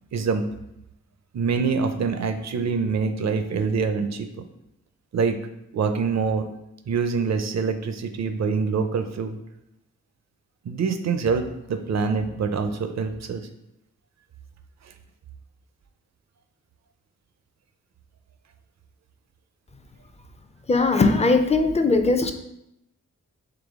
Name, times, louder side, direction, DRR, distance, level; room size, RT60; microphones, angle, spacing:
voice 1, 0.1-0.4 1.3-4.3 5.1-5.4 5.7-6.5 6.9-9.4 10.7-13.5, right 5 dB, 60° right, 8 dB, 0.5 m, -25 dB
voice 2, 20.7-22.3, left 3 dB, 20° left, 7 dB, 0.4 m, -19 dB
3.9 x 3.3 x 3.5 m, 0.82 s
cardioid pair, 70°, 31 cm